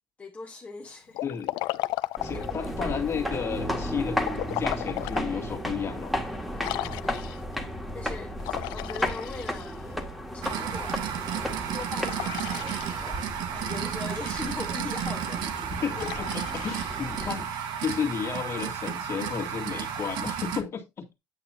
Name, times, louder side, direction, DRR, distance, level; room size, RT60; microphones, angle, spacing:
voice 1, 0.2-1.2 2.3-2.6 6.5-7.0 7.9-10.0 10.3-15.6, left 4 dB, 20° left, 1.2 m, -41 dB
Liquid, 1.1-2.7 4.2-5.3 5.7-5.8 6.6-7.6 8.4-10.0 12.0-13.4 15.9-17.6, left 19 dB, 80° left, 0.6 m, -35 dB
voice 2, 1.2-1.5 2.2-4.2 4.6-6.1 15.7-21.2, left 7 dB, 35° left, 2.0 m, -32 dB
sound 1, 2.2-17.4, equal, ahead, 1.8 m, -34 dB
sound 2, 10.4-20.6, right 8 dB, 75° right, 1.6 m, -33 dB
9.1 x 8.3 x 2.8 m
cardioid pair, 130°, 8 cm